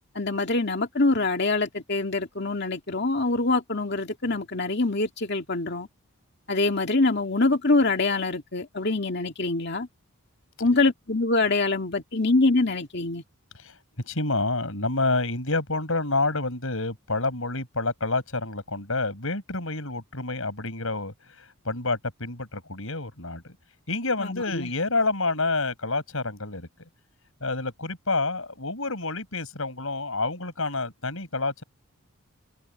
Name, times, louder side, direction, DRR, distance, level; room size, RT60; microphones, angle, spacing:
voice 1, 0.2-5.9 6.5-9.9 10.6-13.2 24.2-24.7, left 3 dB, 50° left, 2.4 m, -24 dB
voice 2, 13.6-23.5 23.9-26.7 27.4-31.6, left 3 dB, 70° left, 6.5 m, -28 dB
head